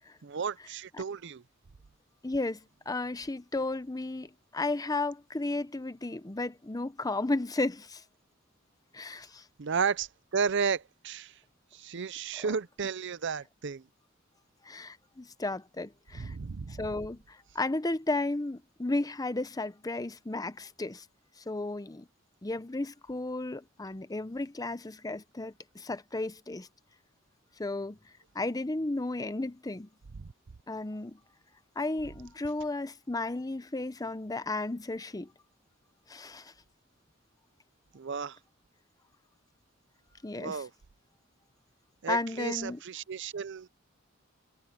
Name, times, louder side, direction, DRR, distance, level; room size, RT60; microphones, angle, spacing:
voice 1, 0.2-1.4 9.6-11.3 11.7-13.8 16.1-16.9 30.2-30.3 37.9-38.4 40.4-40.7 42.0-43.7, right 6 dB, 60° right, 0.6 m, -33 dB
voice 2, 2.2-2.6 2.9-8.0 8.9-9.4 12.4-12.5 14.6-16.3 16.7-21.0 21.5-22.0 22.4-26.7 27.6-28.0 28.3-29.9 30.7-31.2 31.8-35.3 36.1-36.5 40.2-40.6 42.1-42.8, left 2 dB, 20° left, 0.7 m, -34 dB
head